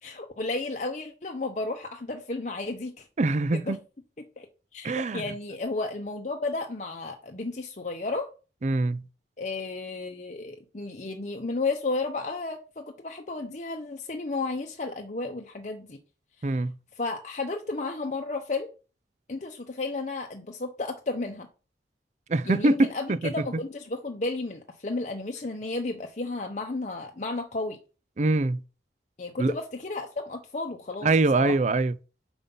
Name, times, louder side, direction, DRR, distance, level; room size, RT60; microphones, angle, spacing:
voice 1, 0.0-3.1 3.5-3.8 4.2-4.5 4.7-8.3 9.4-16.0 16.4-16.6 17.0-18.7 19.3-21.5 22.4-27.8 29.2-31.5, left 3 dB, 40° left, 0.8 m, -33 dB
voice 2, 3.2-3.8 4.8-5.2 8.6-9.0 16.4-16.7 22.3-23.3 28.2-28.6 29.4-29.5 31.0-31.9, right 2 dB, 40° right, 0.4 m, -24 dB
7.0 x 5.4 x 5.4 m
head